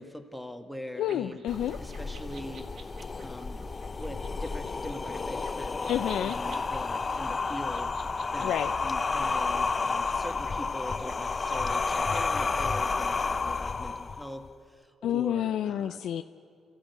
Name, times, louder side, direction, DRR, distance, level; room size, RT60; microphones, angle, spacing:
voice 1, 0.0-1.4 1.8-2.7 3.2-3.7 4.0-16.0, equal, ahead, 6 dB, 1.9 m, -42 dB
voice 2, 1.0-1.8 5.9-6.4 8.4-8.7 15.0-16.2, left 11 dB, 75° left, 9 dB, 0.5 m, -29 dB
sound 1, 1.0-12.7, right 5 dB, 60° right, 1.8 m, -53 dB
sound 2, 1.5-14.5, left 4 dB, 30° left, 0.6 m, -31 dB
27.5 x 14.5 x 8.3 m, 2.4 s
cardioid pair, 90°, 0 cm